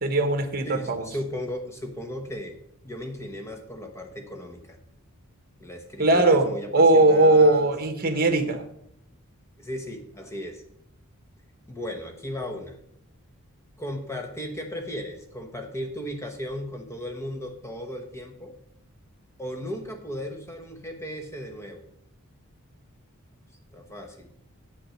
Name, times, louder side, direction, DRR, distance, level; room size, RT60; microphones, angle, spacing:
voice 1, 0.0-1.1 6.0-6.5 6.7-8.6, right 2 dB, 40° right, 8 dB, 1.1 m, -19 dB
voice 2, 0.7-2.6 2.8-4.8 5.6-7.7 9.6-10.6 11.7-12.8 13.8-18.5 19.4-21.9 23.7-24.3, equal, 15° left, 4 dB, 1.1 m, -36 dB
8.7 x 6.1 x 6.3 m, 0.72 s
head